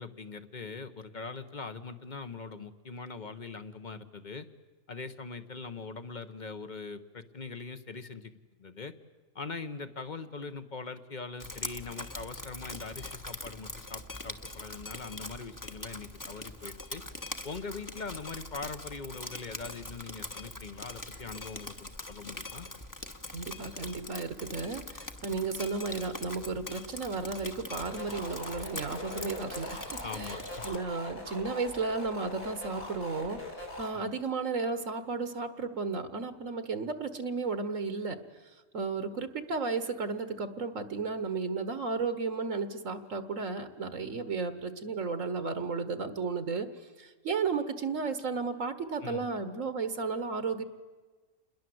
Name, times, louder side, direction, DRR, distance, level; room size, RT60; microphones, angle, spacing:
voice 1, 0.0-4.5 4.9-8.3 8.6-8.9 9.3-17.0 17.4-22.7 30.0-30.6 33.9-34.1 49.0-49.3, left 4 dB, 35° left, 11 dB, 1.2 m, -42 dB
Drip, 11.4-30.8, left 2 dB, 15° left, 1.2 m, -43 dB
voice 2, 23.3-30.4 30.6-33.4 33.8-38.2 38.7-46.7 47.0-50.6, right 4 dB, 70° right, 11 dB, 1.7 m, -33 dB
sound 1, 27.9-33.9, left 1 dB, 80° left, 6.8 m, -42 dB
28.0 x 21.0 x 7.9 m, 1.3 s
omnidirectional pair, 1.4 m